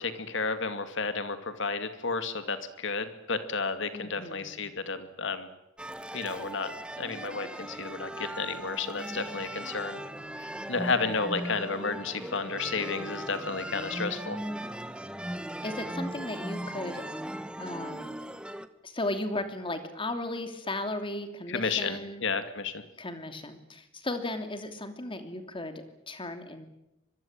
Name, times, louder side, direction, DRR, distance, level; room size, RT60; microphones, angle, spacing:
voice 1, 0.0-5.5 6.1-10.0 10.4-14.4 21.5-22.8, left 4 dB, 65° left, 9 dB, 2.5 m, -32 dB
voice 2, 3.9-4.7 15.6-17.0 17.6-18.2 18.8-22.2 23.0-26.7, left 2 dB, 25° left, 7 dB, 2.9 m, -36 dB
sound 1, 5.8-18.7, right 1 dB, 5° right, 1.2 m, -38 dB
25.0 x 22.0 x 9.0 m, 0.91 s
head